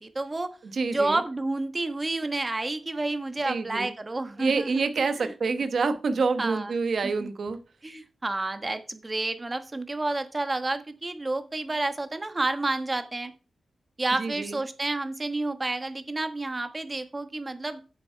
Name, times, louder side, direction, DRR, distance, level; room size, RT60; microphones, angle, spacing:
voice 1, 0.0-0.5 0.9-4.9 5.2-5.3 6.4-6.7 7.2-7.3 7.8-13.3 14.0-17.8, right 2 dB, 25° right, 9 dB, 1.2 m, -30 dB
voice 2, 0.6-1.2 3.4-3.9 4.4-7.6 14.2-14.6, right 4 dB, 60° right, 9 dB, 1.1 m, -27 dB
9.0 x 7.3 x 4.6 m, 0.34 s
wide cardioid pair, 105°, 0 cm